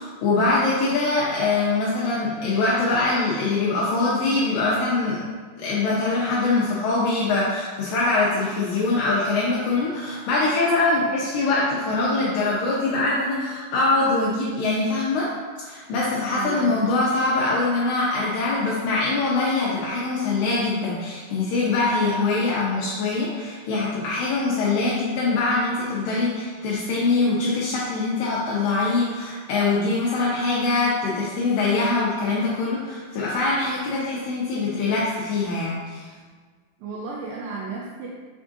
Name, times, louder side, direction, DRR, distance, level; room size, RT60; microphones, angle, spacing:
voice 1, 0.0-5.2 5.6-15.3 15.6-36.1, left 3 dB, 85° left, -6 dB, 2.0 m, -23 dB
voice 2, 16.3-16.7 36.8-38.1, right 4 dB, 90° right, -3 dB, 1.9 m, -33 dB
5.8 x 3.5 x 2.6 m, 1.5 s
omnidirectional pair, 4.6 m